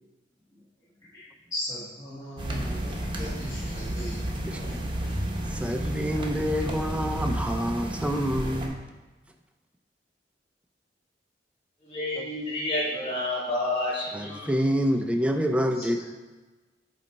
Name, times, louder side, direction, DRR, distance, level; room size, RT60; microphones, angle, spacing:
voice 1, 1.1-4.2 4.6-4.7 5.0-5.1, equal, 20° left, -10 dB, 1.3 m, -38 dB
sound 1, 2.4-8.7, right 1 dB, 30° right, 0.9 m, -31 dB
voice 2, 4.5-4.8 5.5-8.8 12.2-12.3 14.1-16.0, equal, 5° right, 5 dB, 0.4 m, -27 dB
voice 3, 11.8-14.5, left 1 dB, 35° left, -6 dB, 2.1 m, -29 dB
8.0 x 3.2 x 4.2 m, 1.2 s
head